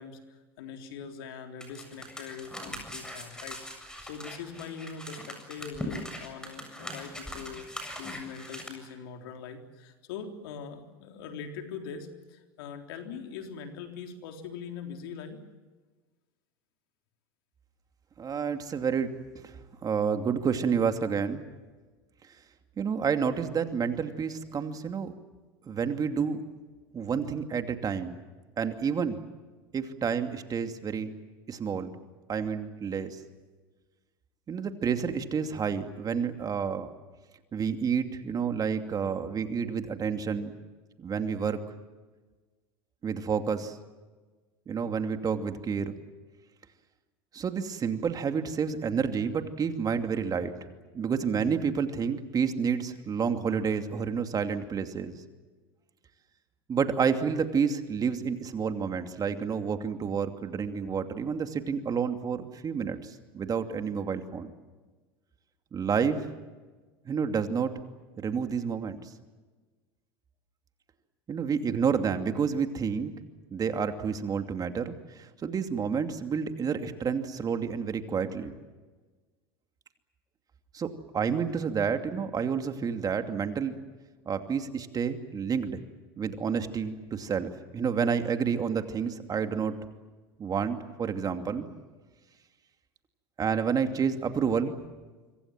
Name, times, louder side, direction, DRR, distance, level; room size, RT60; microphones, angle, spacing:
voice 1, 0.0-15.4, left 6 dB, 75° left, 5 dB, 3.7 m, -42 dB
sound 1, 1.6-8.7, equal, 5° left, 7.5 m, -41 dB
voice 2, 18.2-21.4 22.8-25.1 25.7-26.4 26.9-28.2 28.6-29.2 29.7-31.1 31.5-31.9 32.3-33.2 34.5-36.9 37.5-40.6 41.0-41.6 43.0-43.8 44.7-46.0 47.3-50.7 50.9-55.2 56.7-64.5 65.7-66.3 67.0-67.8 68.2-69.1 71.3-73.1 73.5-78.5 80.7-83.8 84.3-85.8 86.2-89.8 90.4-91.7 93.4-94.8, right 6 dB, 30° right, 7 dB, 2.6 m, -29 dB
26.5 x 24.5 x 7.6 m, 1.3 s
hypercardioid pair, 95°, 12 cm